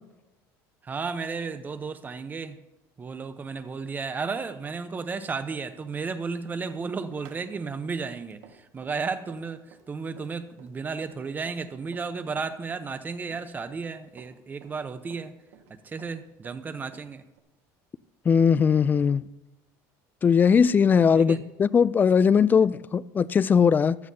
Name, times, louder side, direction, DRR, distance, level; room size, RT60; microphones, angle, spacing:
voice 1, 0.8-2.6 3.0-15.3 15.7-17.2 21.1-21.4, right 4 dB, 20° right, 0.9 m, -33 dB
Run, 6.7-12.1 12.4-13.9 14.2-15.7 16.0-17.4, right 8 dB, 80° right, 1.8 m, -53 dB
voice 2, 18.3-19.3 20.2-24.0, left 6 dB, 20° left, 0.3 m, -20 dB
15.5 x 13.0 x 2.8 m
cardioid pair, 130°, 8 cm